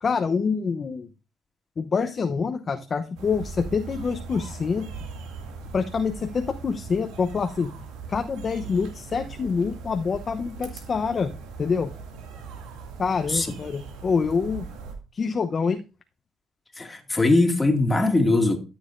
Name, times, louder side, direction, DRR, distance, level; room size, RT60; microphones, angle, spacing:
voice 1, 0.0-1.1 1.8-4.9 5.7-7.7 8.1-11.3 11.6-11.9 13.0-14.6 15.1-15.8, left 5 dB, 40° left, 0.8 m, -26 dB
sound 1, 3.2-15.0, right 4 dB, 90° right, 2.2 m, -40 dB
voice 2, 16.8-18.6, left 2 dB, 20° left, 2.1 m, -21 dB
13.0 x 7.2 x 2.6 m
cardioid pair, 85°, 0 cm